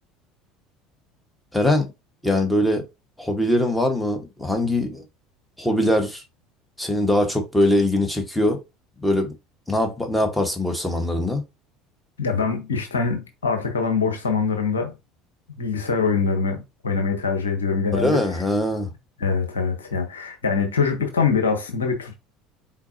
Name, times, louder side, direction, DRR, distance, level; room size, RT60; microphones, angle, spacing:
voice 1, 1.5-1.9 2.2-2.8 3.2-5.0 5.6-6.2 6.8-8.6 9.0-9.3 9.7-11.4 17.9-18.9, left 1 dB, 5° left, 1.5 m, -22 dB
voice 2, 12.2-14.9 15.6-18.2 19.2-22.1, left 5 dB, 85° left, 1.1 m, -23 dB
4.4 x 3.8 x 2.9 m
hypercardioid pair, 70°, 0 cm